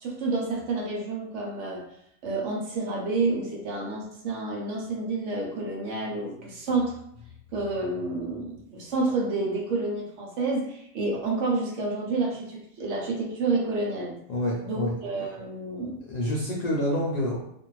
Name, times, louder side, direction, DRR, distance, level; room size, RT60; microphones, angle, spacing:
voice 1, 0.0-1.8 2.2-6.9 7.5-14.1 14.6-16.0, right 3 dB, 65° right, -1 dB, 1.0 m, -29 dB
voice 2, 14.3-14.9 16.0-17.4, equal, 85° left, -4 dB, 0.3 m, -27 dB
2.5 x 2.5 x 3.0 m, 0.73 s
omnidirectional pair, 1.5 m